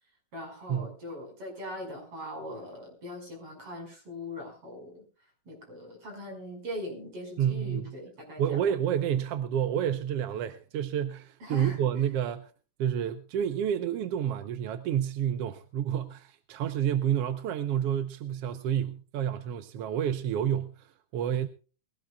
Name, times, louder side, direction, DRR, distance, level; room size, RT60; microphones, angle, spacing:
voice 1, 0.3-5.1 5.5-8.6 11.4-11.8, left 1 dB, 50° right, 6.5 m, -41 dB
voice 2, 7.4-7.9 8.4-12.5 12.8-21.5, right 9 dB, 65° right, 1.6 m, -29 dB
22.5 x 16.5 x 2.3 m
omnidirectional pair, 3.4 m